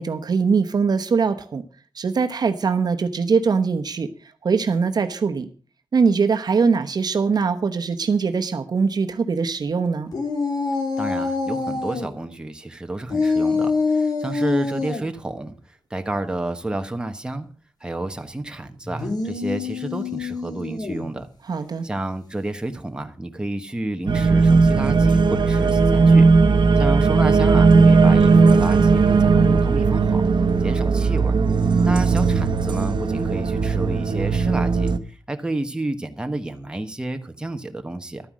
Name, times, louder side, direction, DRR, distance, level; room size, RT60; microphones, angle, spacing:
voice 1, 0.0-1.6 1.9-4.1 4.4-5.5 5.9-10.1 21.5-21.9, right 5 dB, 60° right, 8 dB, 1.1 m, -22 dB
sound 1, 10.1-12.1 13.1-15.0 18.9-21.1, left 4 dB, 60° left, 2.9 m, -25 dB
voice 2, 11.0-17.5 17.8-21.3 21.8-26.3 26.7-30.2 30.6-31.4 31.8-38.2, right 2 dB, 10° right, 6 dB, 1.1 m, -30 dB
sound 2, 24.1-35.0, right 4 dB, 85° right, 1.0 m, -17 dB
12.5 x 9.6 x 6.3 m, 0.39 s
wide cardioid pair, 180°, 8 cm